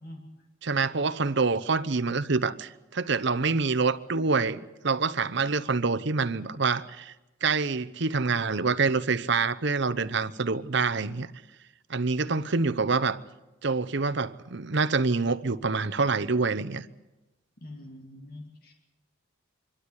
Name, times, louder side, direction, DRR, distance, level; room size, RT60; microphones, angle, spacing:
voice 1, 0.6-7.1 7.4-11.3 11.9-13.2 13.6-16.9, right 4 dB, 55° right, 0.8 m, -26 dB
voice 2, 17.6-18.7, left 1 dB, 45° left, 2.6 m, -44 dB
26.0 x 12.5 x 9.8 m
head